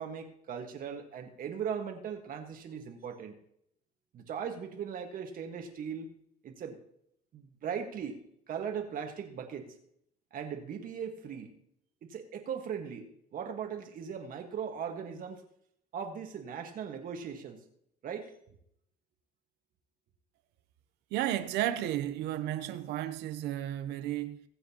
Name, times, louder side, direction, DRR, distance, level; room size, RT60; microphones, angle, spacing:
voice 1, 0.0-3.3 4.1-6.1 6.4-6.8 7.3-8.2 8.5-9.7 10.3-11.5 12.0-15.4 15.9-17.6 18.0-18.3, right 7 dB, 55° right, 1.5 m, -39 dB
voice 2, 21.1-24.4, right 12 dB, 90° right, 0.7 m, -33 dB
21.5 x 7.8 x 2.9 m
cardioid pair, 110°, 17 cm